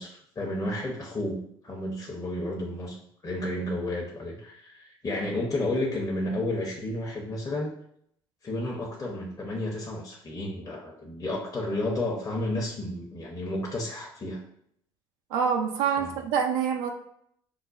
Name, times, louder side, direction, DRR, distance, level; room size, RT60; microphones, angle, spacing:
voice 1, 0.0-3.0 3.2-7.7 8.4-14.4 16.0-16.1, left 1 dB, 30° left, -3 dB, 0.9 m, -32 dB
voice 2, 15.3-16.9, right 7 dB, 85° right, 2 dB, 0.4 m, -26 dB
5.1 x 2.2 x 2.5 m, 0.69 s
hypercardioid pair, 65°, 11 cm